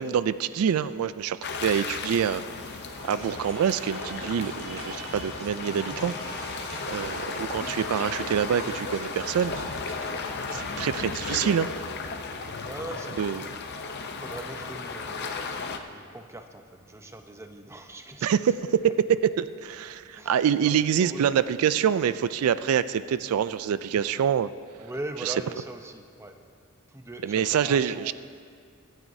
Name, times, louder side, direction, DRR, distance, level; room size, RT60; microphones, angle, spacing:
voice 1, 0.0-2.4 2.7-9.6 10.5-11.7 13.2-13.4 18.2-18.5 19.4-24.5 27.2-28.1, right 8 dB, 80° right, 15 dB, 0.3 m, -26 dB
sound 1, 1.4-15.8, left 4 dB, 50° left, 0.7 m, -35 dB
sound 2, 2.9-10.9, right 2 dB, 65° right, 1.5 m, -44 dB
voice 2, 12.6-13.5 14.2-19.5 20.0-21.5 23.2-23.4 24.7-26.4 26.9-28.1, right 1 dB, 15° right, 5 dB, 0.6 m, -42 dB
24.5 x 9.0 x 2.7 m, 2.1 s
head